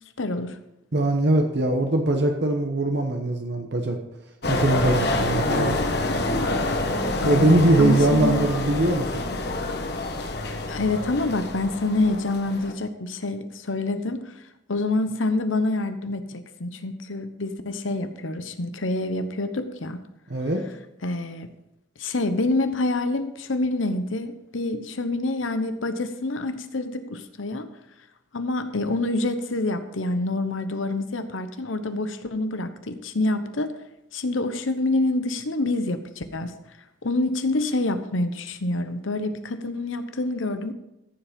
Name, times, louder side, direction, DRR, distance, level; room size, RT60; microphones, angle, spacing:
voice 1, 0.2-0.6 7.2-8.5 10.7-14.3 14.7-20.0 21.0-21.5 22.0-27.7 28.3-33.7 34.1-36.5 37.0-40.7, left 2 dB, 90° left, 10 dB, 1.0 m, -27 dB
voice 2, 0.9-4.0 4.5-5.8 7.2-9.2 20.3-20.6, right 1 dB, 60° right, 3 dB, 1.1 m, -21 dB
sound 1, 4.4-12.7, left 2 dB, 55° left, 1.4 m, -27 dB
14.5 x 7.4 x 5.3 m, 0.88 s
head